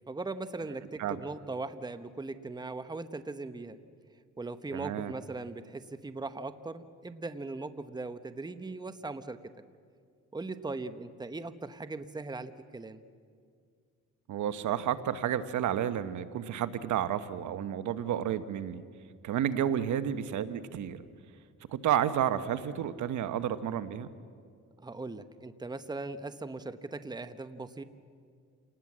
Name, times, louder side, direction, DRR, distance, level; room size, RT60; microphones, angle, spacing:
voice 1, 0.1-3.8 4.4-9.4 10.3-13.0 19.7-19.9 24.8-27.8, right 3 dB, 15° right, 11 dB, 1.0 m, -39 dB
voice 2, 4.7-5.1 14.3-18.8 19.2-21.0 21.7-24.1, right 10 dB, 75° right, 11 dB, 1.1 m, -31 dB
28.5 x 19.5 x 7.5 m, 2.1 s
cardioid pair, 90°, 30 cm